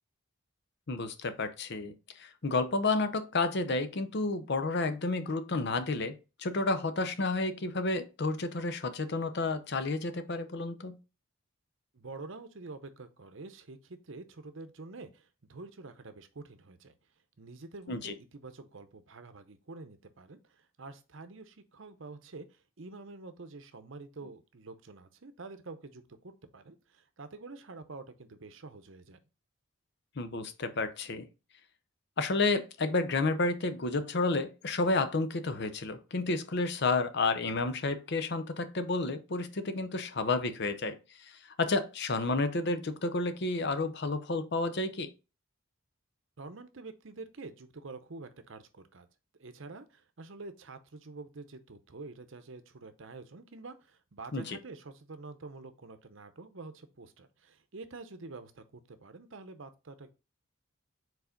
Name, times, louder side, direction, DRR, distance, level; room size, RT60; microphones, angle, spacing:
voice 1, 0.9-11.0 17.9-18.1 30.2-31.3 32.2-45.1 54.3-54.6, left 3 dB, 50° left, 0.7 m, -31 dB
voice 2, 11.9-16.9 17.4-29.2 46.4-49.1 49.4-60.1, right 3 dB, 60° right, 0.7 m, -47 dB
4.9 x 4.0 x 5.1 m
head